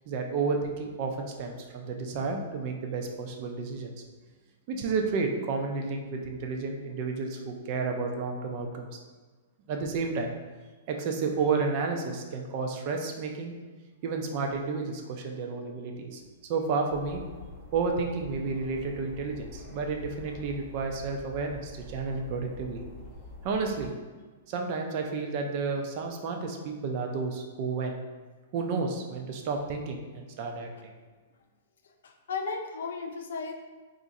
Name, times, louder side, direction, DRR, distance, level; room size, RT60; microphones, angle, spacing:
voice 1, 0.1-3.9 4.7-9.0 9.7-10.3 10.9-13.5 14.0-16.2 16.5-17.2 17.7-22.8 23.4-23.9 24.5-28.0 28.5-30.9, right 4 dB, 35° right, 2 dB, 0.4 m, -31 dB
sound 1, 16.9-23.9, left 2 dB, 10° left, 0.6 m, -46 dB
voice 2, 31.8-33.5, left 4 dB, 75° left, 4 dB, 0.4 m, -35 dB
2.6 x 2.5 x 4.0 m, 1.3 s
hypercardioid pair, 160°, 0 cm